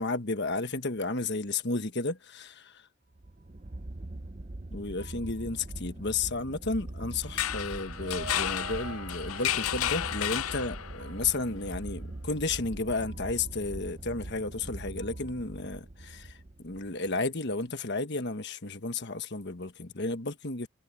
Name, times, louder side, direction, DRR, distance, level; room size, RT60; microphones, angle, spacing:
voice 1, 0.0-2.9 4.7-20.7, left 3 dB, 50° left, 1.4 m, -33 dB
sound 1, 3.1-17.3, right 1 dB, 30° right, 0.8 m, -42 dB
sound 2, 7.2-11.1, left 11 dB, 75° left, 0.5 m, -32 dB
sound 3, 7.3-11.2, right 3 dB, 50° right, 1.9 m, -46 dB
head